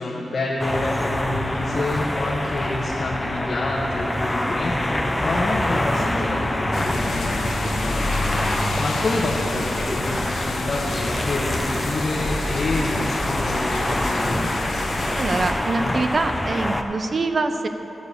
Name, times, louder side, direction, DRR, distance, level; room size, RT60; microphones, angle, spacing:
voice 1, 0.0-8.4 8.8-14.4, left 2 dB, 45° left, -3 dB, 1.2 m, -28 dB
sound 1, 0.6-16.8, left 1 dB, 10° left, 0.6 m, -26 dB
sound 2, 6.7-15.5, left 3 dB, 80° left, 1.4 m, -30 dB
voice 2, 15.2-17.7, right 3 dB, 45° right, 8 dB, 0.7 m, -24 dB
13.5 x 6.9 x 6.8 m, 3.0 s
wide cardioid pair, 120°, 0 cm